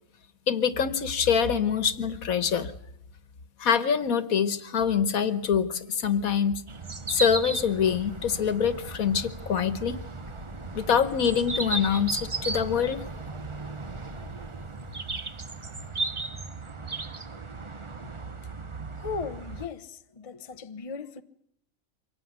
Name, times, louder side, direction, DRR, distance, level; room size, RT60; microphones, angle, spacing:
voice 1, 0.5-2.7 3.6-6.7 7.1-9.9 10.7-13.0, left 7 dB, 80° left, 1.7 m, -25 dB
sound 1, 6.7-19.7, right 3 dB, 25° right, 0.9 m, -35 dB
voice 2, 18.7-21.2, left 5 dB, 30° left, 0.9 m, -38 dB
25.0 x 17.5 x 9.5 m
omnidirectional pair, 1.5 m